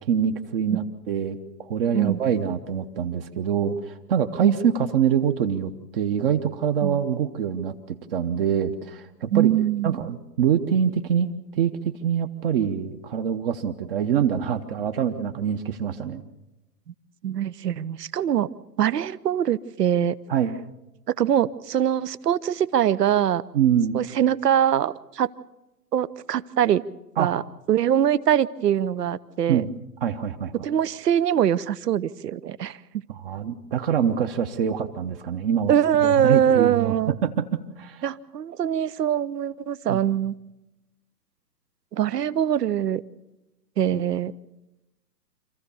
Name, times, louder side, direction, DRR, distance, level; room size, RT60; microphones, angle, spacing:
voice 1, 0.1-9.5 9.8-16.2 20.3-20.5 23.5-24.0 27.2-27.3 29.5-29.7 30.0-30.5 33.2-35.7 36.0-38.0 39.9-40.0, right 8 dB, 35° right, 7 dB, 1.0 m, -25 dB
voice 2, 9.3-10.0 17.2-18.5 18.8-20.2 21.2-23.4 23.9-25.3 25.9-26.8 27.2-27.4 27.7-29.6 30.6-32.8 34.6-34.7 35.7-37.1 38.0-40.3 41.9-43.0 43.8-44.3, right 10 dB, 75° right, 18 dB, 0.9 m, -23 dB
26.5 x 14.5 x 7.0 m, 0.97 s
hypercardioid pair, 130°, 49 cm